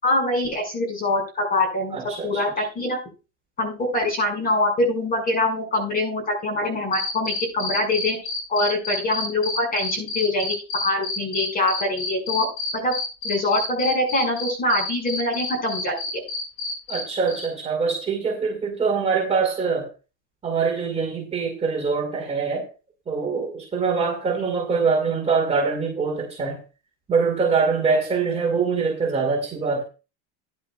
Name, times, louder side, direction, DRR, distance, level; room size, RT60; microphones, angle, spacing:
voice 1, 0.0-2.0 2.2-3.0 3.6-8.2 8.5-12.5 12.7-12.9 13.2-16.2, left 2 dB, 25° left, 4 dB, 5.6 m, -24 dB
voice 2, 1.9-2.4 16.9-19.9 20.4-22.7 23.1-26.6 27.1-29.8, right 5 dB, 20° right, 0 dB, 2.2 m, -24 dB
sound 1, 6.9-17.0 17.3-17.5, left 4 dB, 55° left, 5.7 m, -29 dB
14.5 x 10.5 x 2.3 m, 0.32 s
cardioid pair, 160°, 35 cm